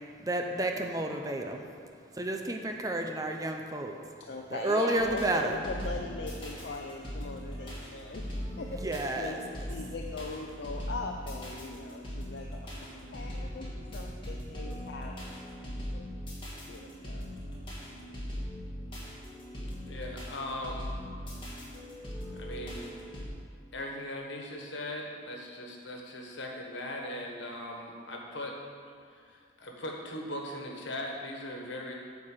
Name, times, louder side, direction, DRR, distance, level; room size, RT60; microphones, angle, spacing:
voice 1, 0.2-1.7 2.2-4.0 4.5-5.9 8.5-9.4, right 1 dB, 20° right, 3 dB, 0.6 m, -31 dB
voice 2, 4.2-8.2 8.6-8.8 9.1-12.6 13.1-15.1 15.9-16.0 16.7-17.3, left 3 dB, 70° left, 1 dB, 0.5 m, -40 dB
sound 1, 5.0-23.3, equal, 30° left, 2.0 m, -40 dB
voice 3, 19.9-21.0 22.3-22.9 23.7-28.6 29.1-31.9, left 1 dB, 85° left, 0 dB, 1.4 m, -39 dB
9.6 x 4.6 x 7.3 m, 2.2 s
head